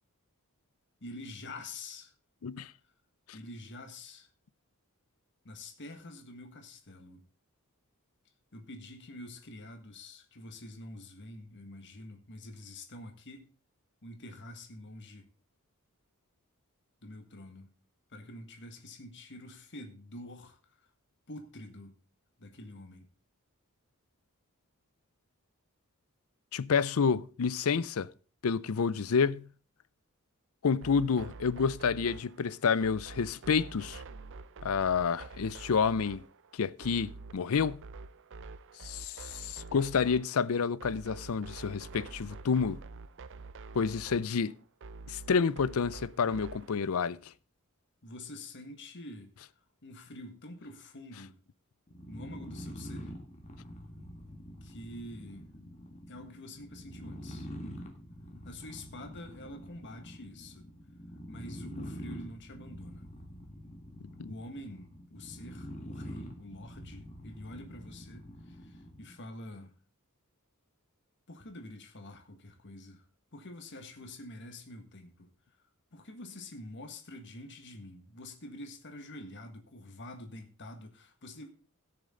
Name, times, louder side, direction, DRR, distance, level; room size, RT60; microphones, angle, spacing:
voice 1, 1.0-2.1 3.3-4.3 5.4-7.2 8.5-13.5 14.0-15.3 17.0-17.7 18.1-20.8 21.3-21.9 22.4-23.1 48.0-49.3 49.8-51.4 52.1-53.1 54.6-55.5 56.1-57.9 58.4-60.7 61.3-63.1 64.2-69.7 71.3-73.0 73.3-75.3 75.9-81.5, left 1 dB, 55° left, 1.7 m, -47 dB
voice 2, 26.5-28.1 28.4-29.5 30.6-34.0 34.6-36.2 36.5-37.8 38.8-42.8 43.7-44.5 45.1-47.2 64.2-64.3, left 5 dB, 70° left, 0.5 m, -29 dB
sound 1, 30.8-46.8, right 3 dB, 60° right, 0.6 m, -47 dB
sound 2, 51.9-69.1, equal, 35° left, 1.9 m, -45 dB
17.0 x 6.8 x 3.8 m
head